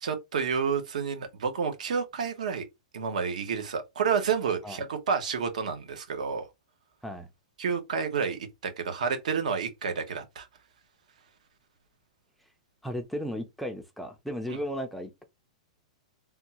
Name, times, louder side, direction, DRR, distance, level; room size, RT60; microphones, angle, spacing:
voice 1, 0.0-2.7 2.9-6.4 7.6-10.5, right 6 dB, 80° right, 1.0 m, -30 dB
voice 2, 12.8-15.2, equal, ahead, 0.3 m, -35 dB
3.5 x 2.3 x 2.8 m
supercardioid pair, 170°, 4 cm